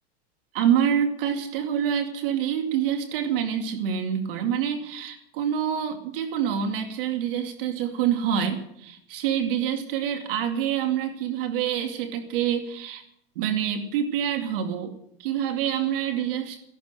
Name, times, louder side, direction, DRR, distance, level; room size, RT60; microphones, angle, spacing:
voice 1, 0.5-13.0 13.4-14.9 15.2-16.6, right 9 dB, 60° right, 5 dB, 2.4 m, -26 dB
16.5 x 11.5 x 7.6 m, 0.71 s
supercardioid pair, 155°, 32 cm